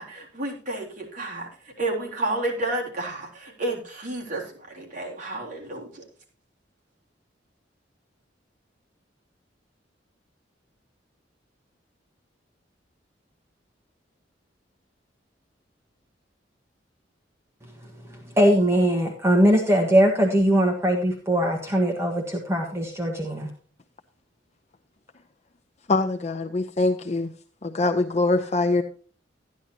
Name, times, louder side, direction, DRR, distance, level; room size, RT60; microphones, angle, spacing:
voice 1, 0.0-6.0, right 2 dB, 45° right, -1 dB, 3.8 m, -31 dB
voice 2, 18.1-23.5, equal, 15° right, 0 dB, 1.5 m, -21 dB
voice 3, 25.9-27.3 27.6-28.8, left 2 dB, 40° left, 5 dB, 0.7 m, -23 dB
13.5 x 10.5 x 2.9 m, 0.42 s
head